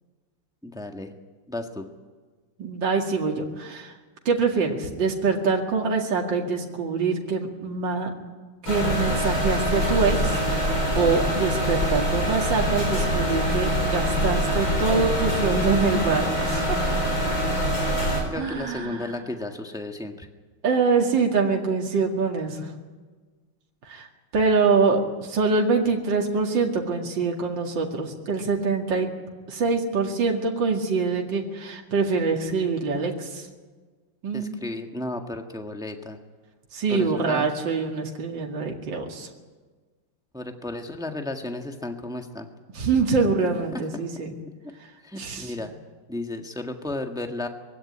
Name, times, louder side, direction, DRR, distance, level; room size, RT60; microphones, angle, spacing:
voice 1, 0.6-1.1 1.5-1.9 18.3-20.3 34.3-36.2 36.9-37.5 40.3-42.5 44.6-44.7 45.0-45.7 46.1-47.5, left 2 dB, ahead, 4 dB, 1.3 m, -33 dB
voice 2, 2.6-3.9 4.3-8.1 8.6-17.2 18.4-19.0 20.6-22.7 23.9-24.1 24.3-29.1 29.5-33.4 34.2-34.6 36.7-39.3 42.7-44.3 45.2-45.5, right 4 dB, 65° right, 1 dB, 2.8 m, -25 dB
sound 1, 8.7-18.2, equal, 70° left, 5.4 m, -24 dB
22.5 x 16.0 x 10.0 m, 1.4 s
omnidirectional pair, 2.2 m